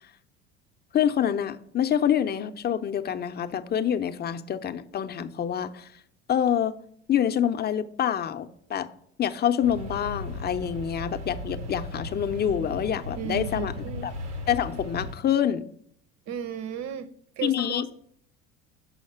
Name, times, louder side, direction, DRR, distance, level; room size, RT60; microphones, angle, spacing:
voice 1, 0.9-5.9 6.3-6.8 7.1-8.9 9.2-13.7 14.0-14.1 14.5-15.7 17.4-17.9, left 9 dB, 30° left, 0.6 m, -26 dB
sound 1, 9.6-15.1, left 1 dB, 80° right, 1.1 m, -36 dB
voice 2, 13.2-14.1 16.3-17.1 17.4-17.9, right 8 dB, 50° right, 0.9 m, -34 dB
6.4 x 5.7 x 5.6 m
hypercardioid pair, 75°, 34 cm